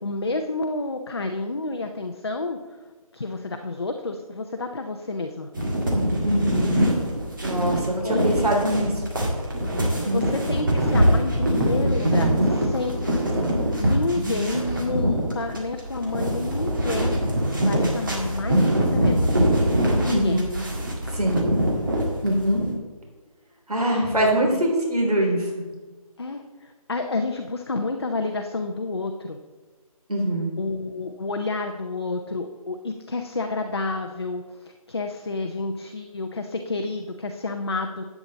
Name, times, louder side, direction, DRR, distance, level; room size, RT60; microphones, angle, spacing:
voice 1, 0.0-2.6 3.1-5.5 8.0-8.4 9.9-13.2 13.6-17.1 17.6-19.3 20.0-20.4 23.9-24.6 26.2-29.4 30.6-38.0, left 3 dB, 45° left, 5 dB, 0.7 m, -29 dB
sound 1, 5.5-22.6, right 1 dB, 35° right, 1.8 m, -23 dB
voice 2, 6.2-6.7 7.4-9.0 10.0-10.3 13.4-13.5 14.2-14.4 20.1-20.5 21.1-21.4 22.2-22.6 23.7-25.6 30.1-30.5, right 1 dB, 85° right, -1 dB, 3.4 m, -23 dB
11.0 x 8.4 x 4.0 m, 1.3 s
figure-of-eight pair, 180°, 19 cm